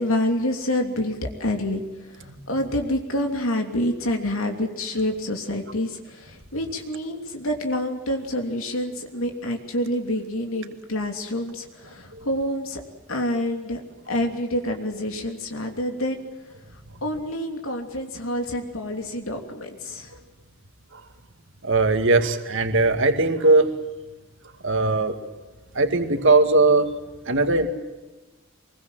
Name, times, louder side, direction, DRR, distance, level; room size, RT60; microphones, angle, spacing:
voice 1, 0.0-12.8 13.1-16.2 16.7-20.2, left 1 dB, 75° left, 3 dB, 3.0 m, -27 dB
voice 2, 21.6-23.7 24.6-25.2 25.7-26.9 27.3-27.7, right 3 dB, 65° right, 7 dB, 2.2 m, -19 dB
24.5 x 22.0 x 7.6 m, 1.1 s
head